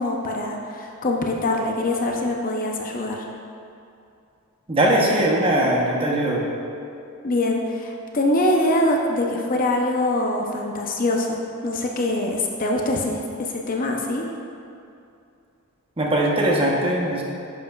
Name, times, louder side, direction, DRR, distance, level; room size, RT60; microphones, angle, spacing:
voice 1, 0.0-3.3 7.2-13.2 13.5-14.2, left 1 dB, 40° left, 1 dB, 0.6 m, -23 dB
voice 2, 4.7-6.4 16.0-17.2, right 1 dB, 25° right, -2 dB, 0.9 m, -20 dB
10.0 x 6.6 x 2.3 m, 2.6 s
head